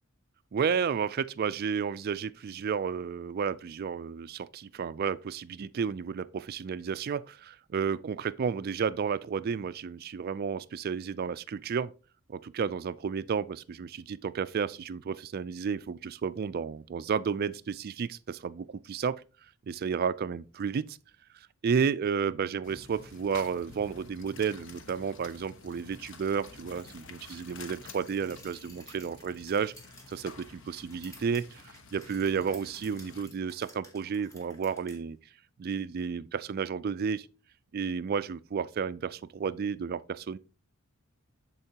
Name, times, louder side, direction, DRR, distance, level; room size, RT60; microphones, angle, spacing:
voice 1, 0.5-11.9 12.3-19.2 19.7-21.0 21.3-29.7 30.1-31.6 31.9-35.2 35.6-37.3 37.7-40.4, right 6 dB, 45° right, 0.3 m, -32 dB
sound 1, 22.6-33.2, left 4 dB, 60° left, 1.0 m, -50 dB
sound 2, 27.6-35.0, left 1 dB, 15° left, 1.4 m, -55 dB
12.0 x 4.5 x 2.8 m
head